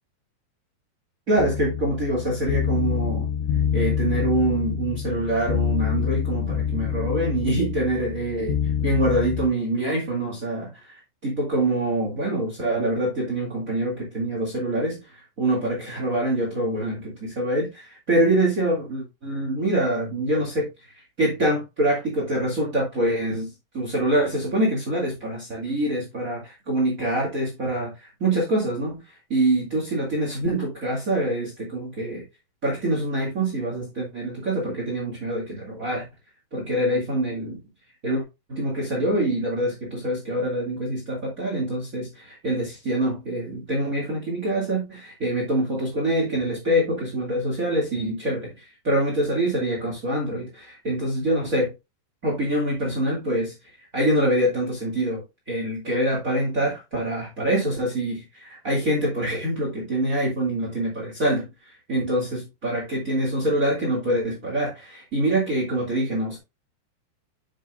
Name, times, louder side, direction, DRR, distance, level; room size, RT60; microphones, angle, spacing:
voice 1, 1.3-3.3 3.7-8.6 8.8-10.7 11.2-20.7 21.2-23.5 23.7-29.0 29.3-32.2 32.6-36.0 36.5-37.6 38.0-38.2 38.5-51.7 52.2-53.5 53.9-55.2 55.5-61.5 61.9-66.4, right 1 dB, 55° right, 0.9 m, -25 dB
sound 1, 1.4-9.5, left 8 dB, 85° left, 3.3 m, -26 dB
9.8 x 6.4 x 2.4 m
omnidirectional pair, 5.5 m